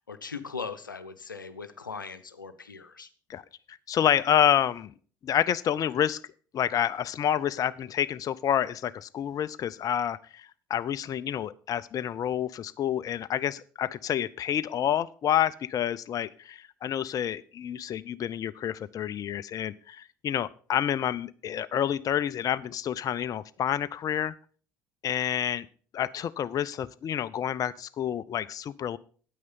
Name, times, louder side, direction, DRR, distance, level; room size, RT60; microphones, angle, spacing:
voice 1, 0.1-3.1, left 5 dB, 85° left, 10 dB, 0.7 m, -39 dB
voice 2, 3.7-4.9 5.2-6.2 6.5-24.3 25.0-25.7 25.9-29.0, left 10 dB, 35° left, 15 dB, 0.5 m, -28 dB
9.4 x 8.7 x 5.4 m, 0.42 s
figure-of-eight pair, 60°, 10 cm